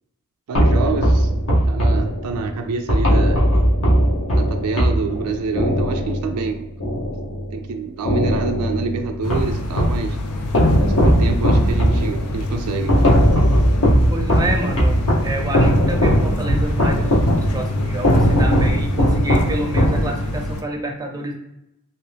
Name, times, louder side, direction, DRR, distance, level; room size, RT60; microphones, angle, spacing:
sound 1, 0.5-7.7 8.0-10.1 10.5-20.5, equal, 60° left, 1.0 m, -18 dB
voice 1, 0.5-1.3 1.7-3.4 4.3-6.7 7.5-10.2 10.8-12.9, right 4 dB, 90° right, 5 dB, 0.4 m, -27 dB
sound 2, 9.2-20.6, left 1 dB, 80° left, 0.5 m, -27 dB
voice 2, 14.1-21.3, right 1 dB, 15° right, 2 dB, 0.6 m, -28 dB
2.9 x 2.7 x 3.3 m, 0.83 s
head